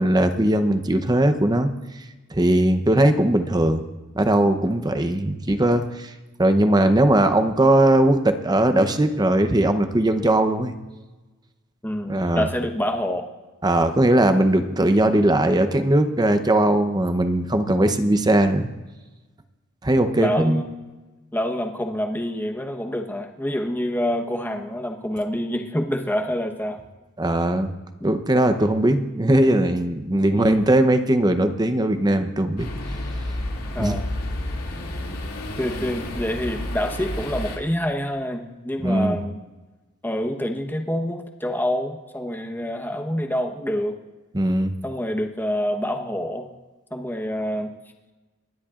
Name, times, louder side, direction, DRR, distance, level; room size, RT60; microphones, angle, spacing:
voice 1, 0.0-1.7 2.3-3.8 4.1-6.1 6.4-10.7 12.1-12.5 13.6-18.7 19.8-20.6 27.2-27.7 28.0-32.7 33.8-34.0 38.8-39.2 44.3-44.7, right 1 dB, 20° right, 9 dB, 0.8 m, -19 dB
voice 2, 11.8-13.3 20.2-20.7 21.3-26.8 30.3-30.7 33.7-34.1 35.6-39.4 40.0-44.0 44.8-46.5 46.9-47.7, equal, 10° left, 3 dB, 1.1 m, -27 dB
sound 1, 32.6-37.6, left 1 dB, 85° left, 2.5 m, -30 dB
28.0 x 11.5 x 2.5 m, 1.2 s
head